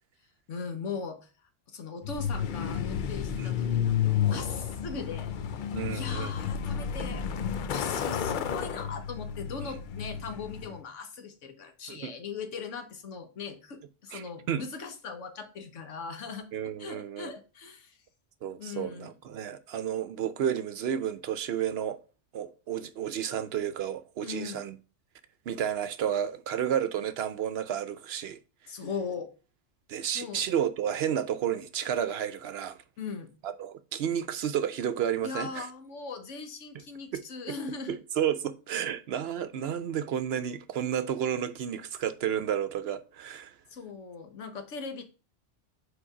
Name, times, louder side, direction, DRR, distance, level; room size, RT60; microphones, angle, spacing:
voice 1, 0.5-1.3 1.7-5.3 5.9-7.2 7.7-16.5 16.8-18.0 18.6-19.1 24.2-24.6 28.7-29.3 30.1-30.4 33.0-33.3 35.2-38.0 43.7-45.0, left 5 dB, 80° left, 1.4 m, -39 dB
Truck, 2.0-10.8, left 8 dB, 60° left, 0.5 m, -31 dB
voice 2, 5.7-6.3 11.9-12.1 14.1-14.6 16.5-17.3 18.4-22.0 22.3-24.7 25.5-28.4 29.9-32.8 33.4-35.7 36.7-36.8 37.1-37.2 37.9-43.5, right 9 dB, 65° right, 0.7 m, -31 dB
5.1 x 4.4 x 4.8 m
omnidirectional pair, 1.2 m